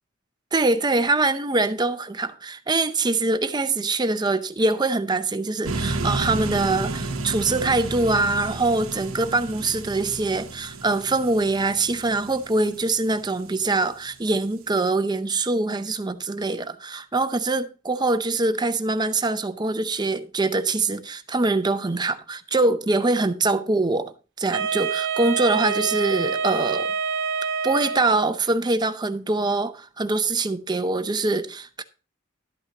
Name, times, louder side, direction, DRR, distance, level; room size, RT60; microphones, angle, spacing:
voice 1, 0.5-26.9 27.6-31.8, right 3 dB, 20° right, 0.6 m, -23 dB
sound 1, 5.6-13.7, right 3 dB, 90° right, 1.1 m, -32 dB
Wind instrument woodwind instrument, 24.5-28.4, right 5 dB, 60° right, 0.8 m, -27 dB
12.0 x 8.9 x 2.8 m
head